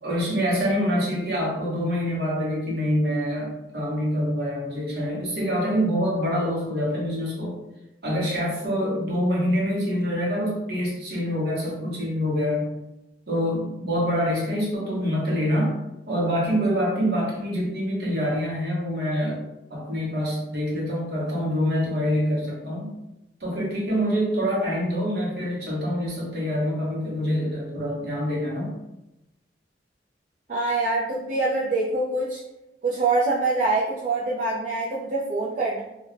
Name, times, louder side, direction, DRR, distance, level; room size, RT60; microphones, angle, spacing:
voice 1, 0.0-7.5 8.0-12.7 13.3-15.8 16.1-19.4 19.7-22.9 23.4-28.7, equal, 60° right, -3 dB, 0.9 m, -25 dB
voice 2, 30.5-32.4 32.8-35.8, right 3 dB, 45° right, -6 dB, 0.4 m, -24 dB
2.3 x 2.2 x 3.1 m, 0.93 s
head